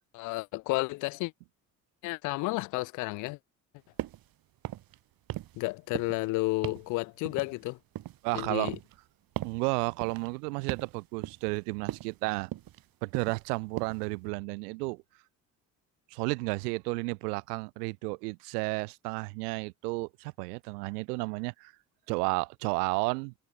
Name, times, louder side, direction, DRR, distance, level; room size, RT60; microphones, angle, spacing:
voice 1, 0.1-1.3 2.0-3.4 5.6-7.8 8.3-8.8, left 23 dB, 45° left, 0.4 m, -31 dB
sound 1, 4.0-4.3 4.6-5.0 5.3-5.7 6.0-6.3 6.6-6.9 7.3-8.3 8.7-9.0 9.4-9.6 10.0-10.3 10.7-11.0 11.2-11.6 11.9-12.2 12.5-12.9 13.1-13.5 13.8-14.1, right 14 dB, 45° right, 1.1 m, -38 dB
voice 2, 8.2-8.7 9.4-12.5 13.0-15.0 16.1-21.7 22.1-23.3, right 28 dB, 70° right, 1.2 m, -32 dB
figure-of-eight pair, 50°, 48 cm